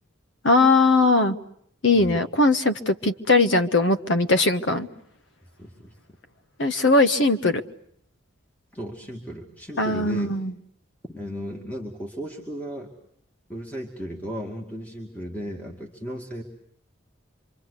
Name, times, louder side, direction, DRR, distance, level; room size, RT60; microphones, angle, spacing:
voice 1, 0.4-1.4 1.8-4.9 6.6-7.6 9.8-10.5, left 2 dB, 70° left, 9 dB, 1.3 m, -20 dB
voice 2, 5.6-6.0 8.7-10.3 11.1-12.9 13.5-16.4, equal, 10° left, 0 dB, 2.3 m, -35 dB
27.0 x 25.5 x 8.3 m, 0.67 s
head